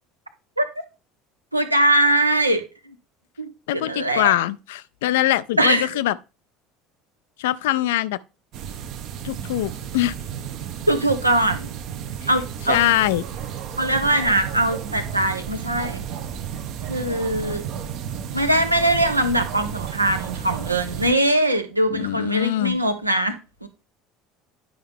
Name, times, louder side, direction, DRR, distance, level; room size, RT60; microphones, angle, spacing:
voice 1, 1.5-2.6 3.4-4.3 5.6-5.9 10.9-11.7 12.3-12.8 13.8-16.0 16.9-17.7 18.3-23.3 23.6-23.7, right 1 dB, 90° right, 0.8 m, -21 dB
voice 2, 3.7-6.2 7.4-8.2 9.2-10.1 12.7-13.2 21.9-22.8, left 14 dB, 65° left, 0.4 m, -22 dB
sound 1, 8.5-21.1, right 8 dB, 50° right, 0.8 m, -33 dB
10.0 x 5.4 x 3.5 m
figure-of-eight pair, 65°, 0 cm